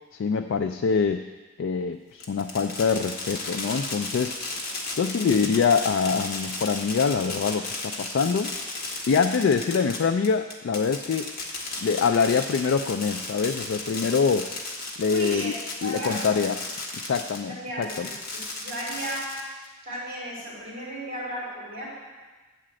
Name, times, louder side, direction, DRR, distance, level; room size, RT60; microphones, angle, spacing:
voice 1, 0.2-1.2 1.6-4.3 5.0-8.5 9.1-11.3 11.8-14.5 15.0-15.5 15.8-16.6 17.0-18.1, left 5 dB, 65° left, 7 dB, 0.3 m, -24 dB
Fireworks, 2.2-17.4 17.8-19.7, left 3 dB, 45° left, 1.3 m, -34 dB
voice 2, 15.1-15.5 15.8-16.3 17.5-19.4 19.8-21.9, right 1 dB, 40° right, -7 dB, 3.5 m, -35 dB
8.4 x 5.0 x 7.6 m, 1.3 s
head